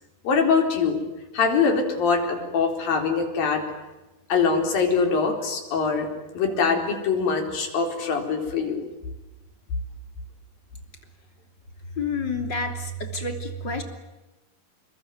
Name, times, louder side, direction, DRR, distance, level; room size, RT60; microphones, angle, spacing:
voice 1, 0.2-1.0 1.3-3.6 4.3-8.9, left 5 dB, 80° left, 3 dB, 5.9 m, -23 dB
voice 2, 12.0-13.8, left 2 dB, 30° left, 5 dB, 3.5 m, -29 dB
28.0 x 22.5 x 9.4 m, 1.1 s
omnidirectional pair, 4.1 m